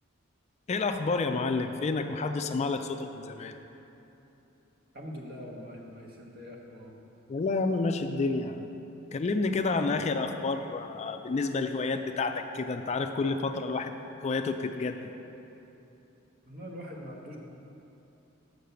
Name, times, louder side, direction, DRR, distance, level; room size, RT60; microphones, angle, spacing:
voice 1, 0.7-3.6 7.3-8.7 9.1-15.1, left 3 dB, 35° left, 7 dB, 0.3 m, -30 dB
voice 2, 4.9-6.9 16.4-17.4, equal, 50° right, -2 dB, 1.3 m, -43 dB
6.6 x 6.4 x 6.8 m, 3.0 s
head